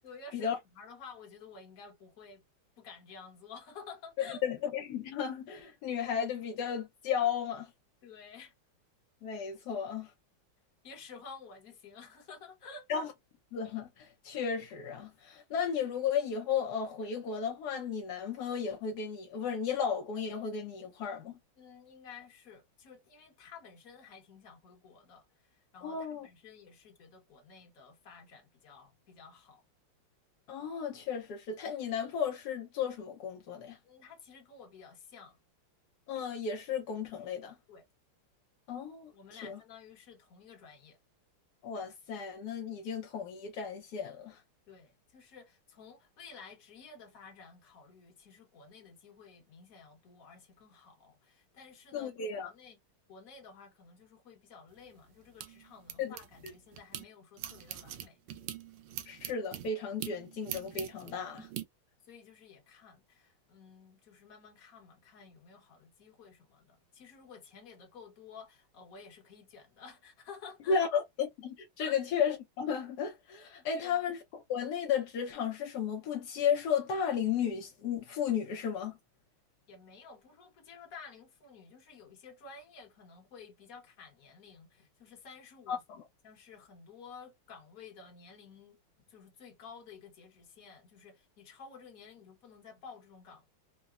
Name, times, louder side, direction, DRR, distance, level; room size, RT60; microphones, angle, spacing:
voice 1, 0.0-2.4 2.8-4.4 8.0-8.5 10.8-12.9 21.6-29.6 33.8-35.4 37.7-37.8 39.1-41.0 44.7-52.8 53.1-58.2 62.1-70.9 71.8-72.0 73.7-74.0 79.7-85.8 86.2-93.5, left 5 dB, 50° left, 1.2 m, -52 dB
voice 2, 4.2-7.7 9.2-10.1 12.9-13.1 13.5-21.4 25.8-26.3 30.5-33.8 36.1-37.6 38.7-39.6 41.6-44.4 51.9-52.5 56.0-56.2 56.4-56.5 59.1-61.5 70.7-79.0 85.7-86.0, left 7 dB, 75° left, 0.9 m, -34 dB
sound 1, 54.7-57.0 57.4-61.6, right 12 dB, 90° right, 1.5 m, -43 dB
3.8 x 2.0 x 2.4 m
omnidirectional pair, 2.4 m